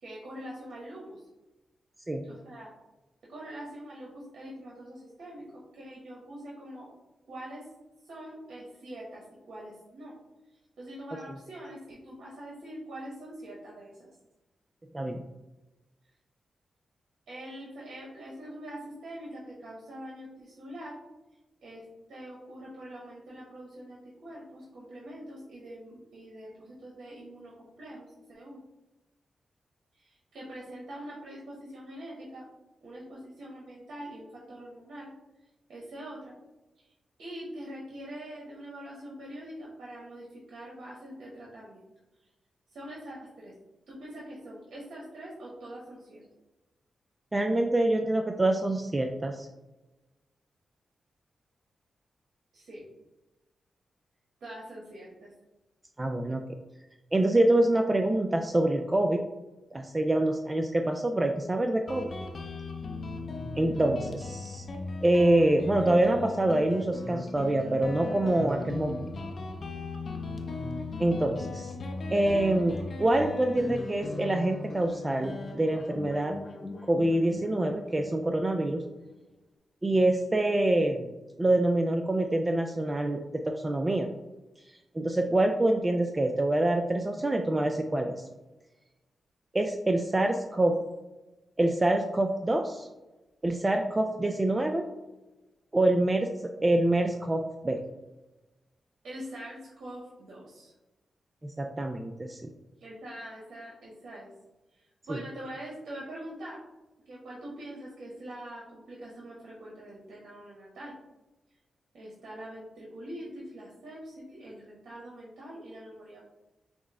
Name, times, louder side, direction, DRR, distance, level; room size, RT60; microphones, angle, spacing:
voice 1, 0.0-1.2 2.2-2.7 3.3-5.5 5.7-6.9 7.3-7.7 8.0-10.1 10.8-14.1 17.3-21.0 21.6-21.8 22.1-28.6 29.9-32.4 32.8-35.1 35.7-36.3 36.8-36.9 37.2-41.8 42.7-43.5 43.9-46.2 52.5-52.9 54.4-55.3 99.0-100.7 102.8-104.3 104.7-106.6 107.1-110.9 111.9-116.2, right 1 dB, 75° right, -5 dB, 1.1 m, -44 dB
voice 2, 47.3-49.5 56.0-56.4 57.1-59.2 59.7-62.1 63.6-64.7 65.0-69.1 71.0-71.7 72.1-76.3 76.9-78.8 79.8-81.1 81.4-84.1 84.9-88.1 89.5-90.7 91.6-92.9 93.4-94.8 95.7-96.3 96.6-97.8 101.4-102.4 105.1-105.2, right 1 dB, 25° right, 4 dB, 0.4 m, -26 dB
Guitar, 61.9-79.1, left 3 dB, 55° left, 0.6 m, -38 dB
6.0 x 2.1 x 3.6 m, 1.1 s
cardioid pair, 80°, 0 cm